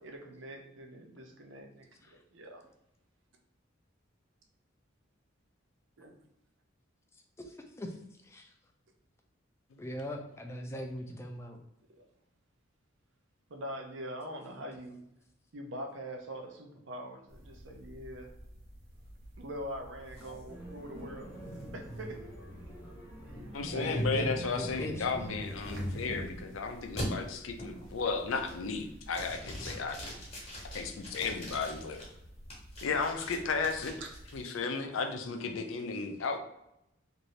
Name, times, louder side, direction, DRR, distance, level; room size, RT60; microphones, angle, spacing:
voice 1, 0.0-2.6 6.0-6.1 12.0-12.1 13.5-15.0 15.5-18.3 19.4-21.3 21.7-22.2 23.3-23.5 23.7-24.1 24.6-24.8 34.0-34.1, equal, 70° right, 3 dB, 0.6 m, -43 dB
voice 2, 7.4-8.0 8.2-8.5 9.8-11.6 23.6-25.3, equal, 15° left, 3 dB, 0.3 m, -40 dB
sound 1, 17.3-34.4, equal, 50° right, 0.9 m, -52 dB
sound 2, 20.1-26.5 27.0-27.1 27.6-27.9 28.3-28.8 29.1-32.0 32.5-34.5, equal, 30° left, 1.0 m, -41 dB
sound 3, 20.5-25.6, right 1 dB, 10° right, 0.8 m, -49 dB
voice 3, 23.5-30.0 30.7-32.0 32.8-33.9 34.3-36.4, left 4 dB, 85° left, 5 dB, 0.5 m, -34 dB
2.7 x 2.6 x 3.1 m, 0.82 s
head